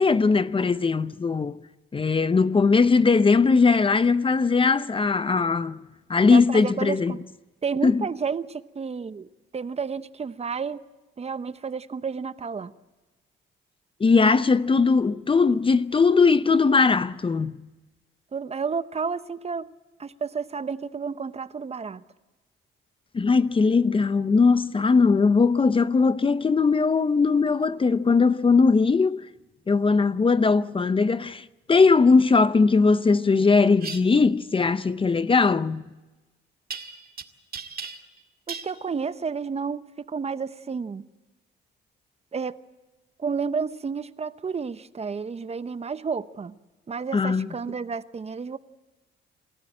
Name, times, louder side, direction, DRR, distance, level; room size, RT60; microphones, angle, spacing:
voice 1, 0.0-1.6 1.9-5.8 6.1-7.2 7.8-8.0 14.0-17.6 23.1-29.3 29.7-35.9 47.1-47.5, left 4 dB, 25° left, 0.7 m, -20 dB
voice 2, 6.3-7.2 7.6-10.8 11.2-12.8 18.3-19.7 20.0-22.0 38.5-41.1 42.3-42.5 43.2-46.6 46.9-48.6, right 5 dB, 30° right, 0.8 m, -31 dB
sound 1, 33.8-34.0 36.7-37.2 37.5-38.2 38.5-38.7, right 5 dB, 50° right, 2.1 m, -36 dB
27.0 x 14.0 x 8.7 m
cardioid pair, 90°, 20 cm